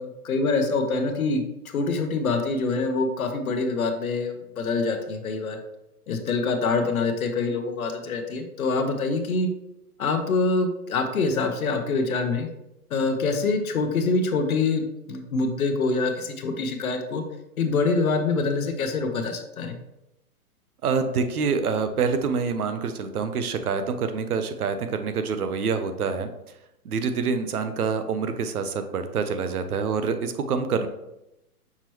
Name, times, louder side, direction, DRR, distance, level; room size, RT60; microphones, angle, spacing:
voice 1, 0.0-1.4 1.7-5.6 6.1-9.5 10.0-12.5 12.9-17.2 17.6-19.8, left 3 dB, 65° left, 6 dB, 0.8 m, -25 dB
voice 2, 20.8-26.3 26.8-30.9, right 5 dB, 75° right, 9 dB, 0.7 m, -26 dB
5.9 x 2.9 x 3.0 m, 0.89 s
hypercardioid pair, 180°, 46 cm